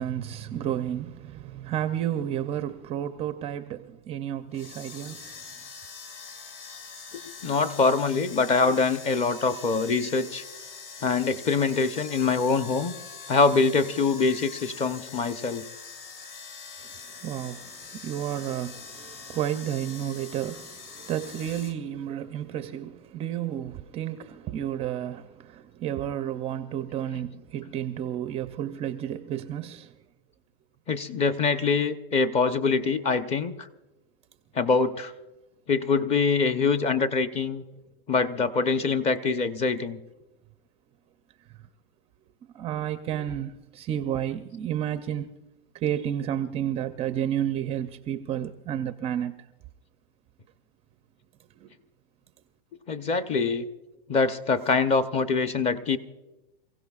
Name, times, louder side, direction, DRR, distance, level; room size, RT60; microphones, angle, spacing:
voice 1, 0.0-5.4 16.8-16.9 17.2-30.0 42.5-45.3 45.7-49.4 51.6-51.7, right 10 dB, 20° right, 0.5 m, -31 dB
sound 1, 4.5-21.7, left 5 dB, 65° left, 2.5 m, -43 dB
voice 2, 7.2-10.4 11.0-12.9 13.3-15.6 30.9-33.7 34.5-35.1 35.7-37.6 38.1-40.0 52.9-53.6 54.1-56.0, left 4 dB, 20° left, 0.8 m, -24 dB
28.5 x 16.5 x 2.4 m
supercardioid pair, 145°, 30 cm